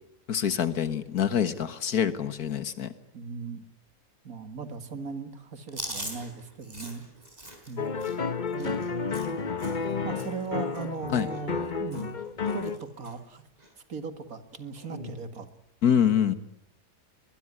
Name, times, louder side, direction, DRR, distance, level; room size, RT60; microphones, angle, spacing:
voice 1, 0.3-2.9 11.1-11.3 15.8-16.3, left 8 dB, 70° left, 12 dB, 1.9 m, -25 dB
voice 2, 3.1-3.6 4.2-7.0 7.7-8.2 8.6-8.9 10.0-12.2 12.5-13.4 13.9-15.5, right 5 dB, 60° right, 10 dB, 2.3 m, -38 dB
Chewing mastication, 5.7-9.9 10.2-10.5 10.7-11.7 11.9-12.2 12.5-13.2 13.6-13.7 14.8-15.2, right 1 dB, 25° right, 4.9 m, -42 dB
sound 1, 7.8-12.8, left 5 dB, 35° left, 1.0 m, -31 dB
22.0 x 21.0 x 9.8 m, 0.78 s
omnidirectional pair, 1.7 m